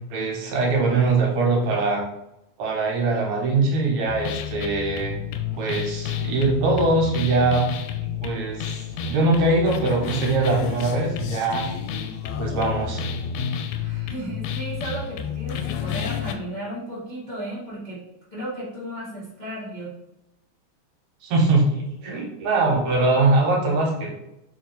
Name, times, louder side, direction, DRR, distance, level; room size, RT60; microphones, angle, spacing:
voice 1, 0.0-2.1 2.6-5.2 5.6-7.6 8.2-11.7 12.4-13.0 21.2-24.1, right 3 dB, 70° right, -1 dB, 2.1 m, -22 dB
sound 1, 4.1-16.3, left 7 dB, 85° left, 1.9 m, -30 dB
voice 2, 13.7-18.0 18.3-19.9, right 1 dB, 50° left, -9 dB, 0.5 m, -34 dB
4.5 x 2.8 x 4.1 m, 0.86 s
omnidirectional pair, 3.4 m